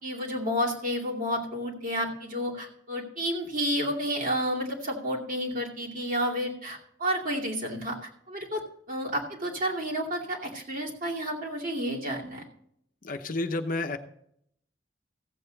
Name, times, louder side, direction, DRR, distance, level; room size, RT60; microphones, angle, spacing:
voice 1, 0.0-8.6 8.9-12.4, equal, 50° right, -2 dB, 2.6 m, -31 dB
voice 2, 13.0-14.0, left 2 dB, 50° left, 7 dB, 0.8 m, -30 dB
15.5 x 7.9 x 4.0 m, 0.69 s
head